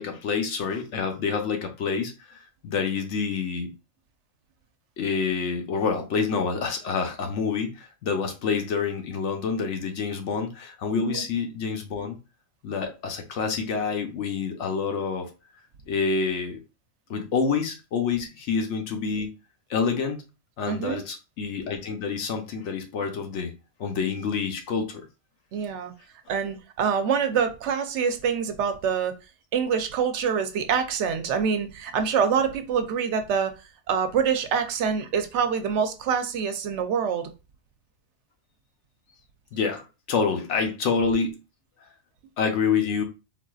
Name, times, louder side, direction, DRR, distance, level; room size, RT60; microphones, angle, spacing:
voice 1, 0.0-3.7 5.0-12.2 12.6-15.3 15.9-16.6 17.1-19.3 19.7-20.3 20.6-25.1 39.5-41.4 42.4-43.0, left 5 dB, 75° left, 1.0 m, -27 dB
voice 2, 20.7-21.0 25.5-25.9 26.3-29.1 29.5-33.5 33.9-37.3, right 6 dB, 75° right, 0.9 m, -25 dB
3.8 x 2.5 x 2.3 m
omnidirectional pair, 1.2 m